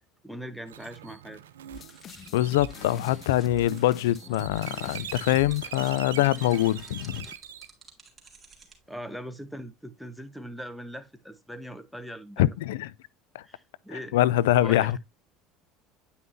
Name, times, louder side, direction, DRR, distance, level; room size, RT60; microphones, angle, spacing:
voice 1, 0.2-1.4 8.9-12.5 13.4-14.2 14.6-15.0, equal, ahead, 1.0 m, -40 dB
sound 1, 0.7-7.7, right 10 dB, 90° right, 0.6 m, -43 dB
sound 2, 1.7-7.3, left 7 dB, 40° left, 0.7 m, -45 dB
sound 3, 1.8-8.8, right 5 dB, 20° right, 2.8 m, -53 dB
voice 2, 2.3-7.3 12.4-12.9 13.3-13.4 13.9-15.0, left 14 dB, 80° left, 0.3 m, -24 dB
9.2 x 5.6 x 2.6 m
hypercardioid pair, 85°, 0 cm